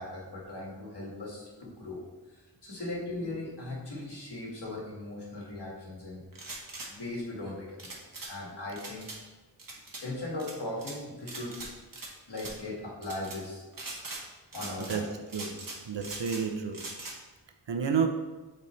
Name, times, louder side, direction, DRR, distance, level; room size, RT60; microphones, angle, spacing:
voice 1, 0.0-6.2 6.9-8.0 8.3-9.1 10.0-11.6 12.3-13.7 14.5-15.1, left 2 dB, 65° left, -4 dB, 2.1 m, -38 dB
sound 1, 6.3-6.9 7.8-8.3 8.8-9.2 9.6-10.0 10.4-11.0 11.3-12.1 12.3-12.6 13.0-13.4 13.7-14.2 14.5-15.0 15.3-16.4 16.7-17.2, right 2 dB, 50° right, 1.3 m, -41 dB
voice 2, 15.3-16.9 17.7-18.1, right 6 dB, 80° right, 5 dB, 0.8 m, -30 dB
8.4 x 4.3 x 3.2 m, 1.2 s
wide cardioid pair, 90°, 43 cm